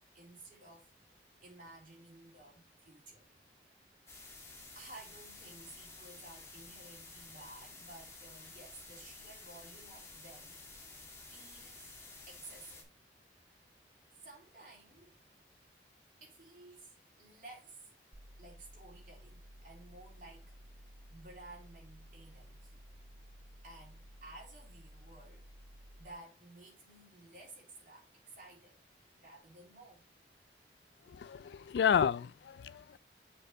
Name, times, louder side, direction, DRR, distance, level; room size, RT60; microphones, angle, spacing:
voice 1, 0.1-1.1 1.4-3.2 4.7-10.9 11.3-11.9 12.3-12.8 14.2-15.1 16.2-17.9 18.4-20.6 21.1-23.2 23.6-25.4 26.0-28.8 29.2-30.1, right 2 dB, 45° right, 3.3 m, -55 dB
sound 1, 4.1-12.8, left 3 dB, 15° left, 1.7 m, -52 dB
sound 2, 18.1-26.1, equal, 20° right, 0.8 m, -55 dB
voice 2, 31.1-33.0, left 7 dB, 75° left, 0.3 m, -31 dB
6.7 x 4.8 x 4.4 m
head